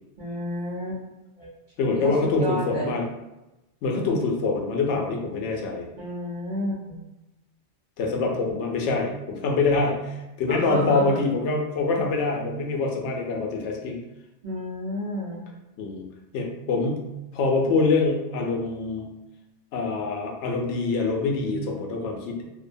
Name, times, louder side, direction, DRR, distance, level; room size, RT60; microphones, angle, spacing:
voice 1, 0.2-1.0 1.4-1.5 1.9-2.1 2.4-2.9 6.0-7.0 10.5-11.2 14.4-15.5, equal, 45° right, -6 dB, 0.9 m, -31 dB
voice 2, 1.8-3.0 3.8-5.9 8.0-14.0 15.8-16.1 16.3-17.1 17.3-19.1 19.7-22.4, left 3 dB, 75° left, 1 dB, 0.9 m, -25 dB
2.6 x 2.1 x 2.5 m, 0.99 s
omnidirectional pair, 1.2 m